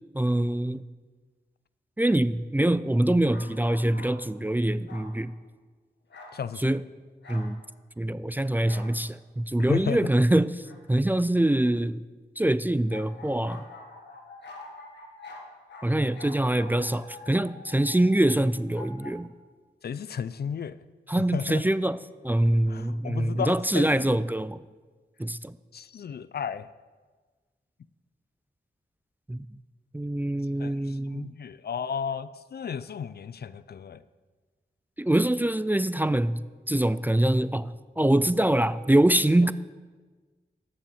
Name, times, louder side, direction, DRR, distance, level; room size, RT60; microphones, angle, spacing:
voice 1, 0.1-0.8 2.0-5.3 6.6-6.8 7.3-7.6 8.0-12.0 12.4-13.6 15.8-19.3 21.1-24.6 25.2-25.5 29.3-29.5 29.9-31.3 35.0-36.4 36.7-39.5, right 1 dB, 10° right, 0.3 m, -24 dB
sound 1, 3.2-4.2 4.9-5.2 6.1-6.4 7.2-7.5 8.6-8.9 10.6-10.8 12.9-19.1, left 3 dB, 90° left, 1.5 m, -46 dB
voice 2, 6.3-6.7 9.6-10.0 19.8-20.8 21.3-21.6 22.7-24.2 25.7-26.7 30.6-34.0, left 7 dB, 65° left, 0.4 m, -33 dB
8.7 x 7.0 x 7.2 m
cardioid pair, 55°, 18 cm